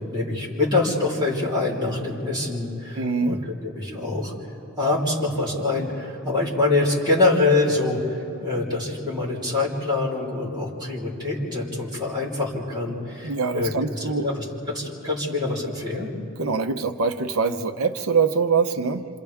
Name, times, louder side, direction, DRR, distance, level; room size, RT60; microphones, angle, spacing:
voice 1, 0.0-4.3 4.8-13.7 14.1-16.1, left 2 dB, 20° right, -7 dB, 3.8 m, -25 dB
voice 2, 2.9-3.4 13.2-14.3 16.4-19.1, right 5 dB, 80° right, 6 dB, 0.9 m, -24 dB
28.0 x 27.0 x 3.6 m, 3.0 s
head